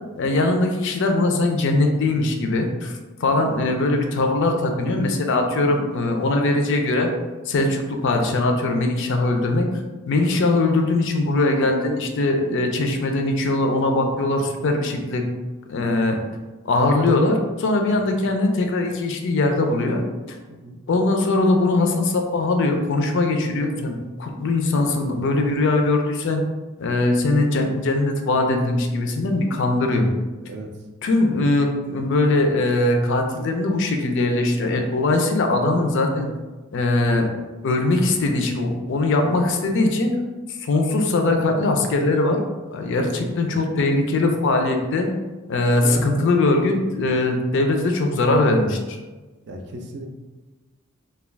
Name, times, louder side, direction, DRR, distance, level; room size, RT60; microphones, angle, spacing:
voice 1, 0.2-2.9 3.2-7.1 7.5-9.7 10.1-15.3 15.7-16.2 16.6-20.4 20.9-26.4 26.8-30.1 31.0-36.3 36.7-37.3 37.6-40.2 40.5-42.4 42.7-45.1 45.5-49.0, left 2 dB, 60° left, 4 dB, 0.4 m, -21 dB
voice 2, 20.5-20.8 30.5-30.7 43.0-43.6 45.8-46.2 49.5-50.1, right 1 dB, 55° right, 2 dB, 0.4 m, -35 dB
2.3 x 2.3 x 3.2 m, 1.2 s
head